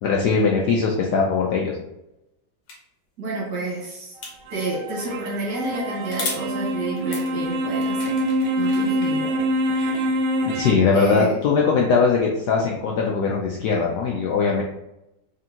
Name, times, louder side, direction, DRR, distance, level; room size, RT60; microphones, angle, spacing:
voice 1, 0.0-1.8 9.7-10.1 10.5-14.6, left 5 dB, 75° left, -1 dB, 0.9 m, -21 dB
sound 1, 2.7-2.8 4.2-4.8 6.1-6.4 7.0-9.1, left 4 dB, 60° left, 1.4 m, -34 dB
voice 2, 3.2-4.2 4.5-8.2 8.6-9.4 10.9-11.4, right 3 dB, 60° right, -4 dB, 1.8 m, -29 dB
sound 2, 4.2-10.7, equal, 90° right, 0.8 m, -25 dB
3.7 x 3.4 x 2.8 m, 0.88 s
omnidirectional pair, 2.2 m